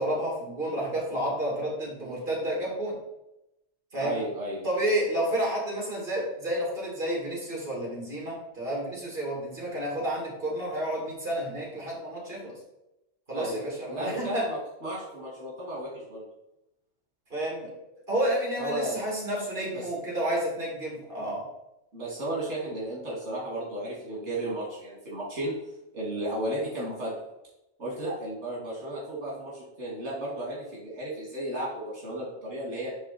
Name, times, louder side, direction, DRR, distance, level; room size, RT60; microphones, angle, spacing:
voice 1, 0.0-2.9 3.9-4.1 4.6-12.5 13.3-14.5 17.3-17.7 18.1-21.4, right 1 dB, 50° right, -3 dB, 2.6 m, -30 dB
voice 2, 4.0-4.7 13.3-16.2 18.6-19.0 19.7-19.9 21.9-25.5 25.9-27.1 27.8-32.9, right 1 dB, 75° right, -6 dB, 2.6 m, -34 dB
10.0 x 3.6 x 4.2 m, 0.90 s
omnidirectional pair, 1.2 m